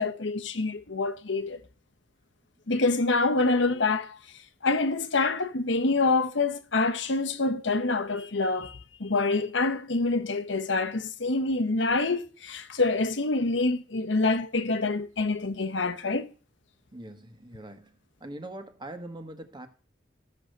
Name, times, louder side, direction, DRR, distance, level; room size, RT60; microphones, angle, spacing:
voice 1, 0.0-1.6 2.7-4.2 4.6-16.3, left 3 dB, 85° left, 1.1 m, -26 dB
voice 2, 16.9-17.9 18.2-19.7, right 1 dB, 25° right, 1.6 m, -42 dB
14.5 x 6.6 x 6.7 m
head